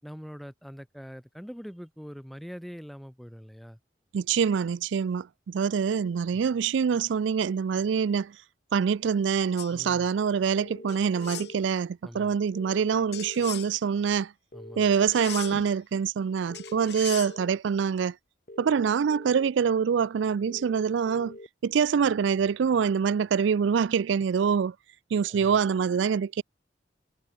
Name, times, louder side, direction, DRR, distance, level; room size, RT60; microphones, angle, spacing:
voice 1, 0.0-3.8 6.3-6.4 9.7-10.1 12.0-12.3 14.5-14.9 25.3-25.6, equal, ahead, 4.5 m, -43 dB
voice 2, 4.1-8.3 8.7-14.3 14.8-18.1 18.6-21.4 21.6-24.7 25.1-26.4, right 6 dB, 85° right, 0.4 m, -25 dB
sound 1, 9.6-9.8 10.9-11.5 13.1-13.7 14.9-15.7 16.5-17.3, left 11 dB, 65° left, 3.0 m, -39 dB
sound 2, 10.6-11.6 12.5-13.6 14.5-15.5 16.5-17.5 18.5-19.5 20.5-21.5 22.4-22.5, left 1 dB, 45° left, 2.2 m, -44 dB
head